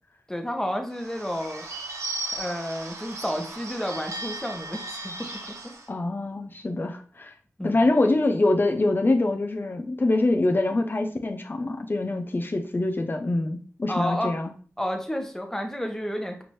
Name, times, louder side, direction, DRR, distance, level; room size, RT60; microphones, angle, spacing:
voice 1, 0.3-1.6 2.3-5.7 7.6-7.9 13.9-14.3 14.8-16.4, equal, 10° left, 4 dB, 1.1 m, -31 dB
Bird / Bell, 0.9-5.9, right 2 dB, 85° right, 0.6 m, -36 dB
voice 2, 5.9-7.3 7.6-14.5, left 2 dB, 45° left, 5 dB, 0.6 m, -24 dB
5.9 x 2.6 x 3.1 m, 0.42 s
cardioid pair, 45°, 5 cm